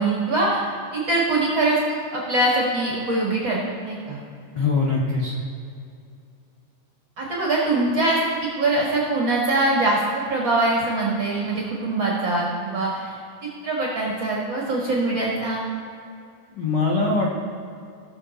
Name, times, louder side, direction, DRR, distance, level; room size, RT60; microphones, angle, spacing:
voice 1, 0.0-4.2 7.2-13.2 13.6-15.7, right 2 dB, 50° right, -3 dB, 1.4 m, -23 dB
voice 2, 4.5-5.3 16.6-17.5, left 3 dB, 75° left, -4 dB, 1.0 m, -22 dB
17.5 x 6.4 x 4.1 m, 2.5 s
omnidirectional pair, 4.1 m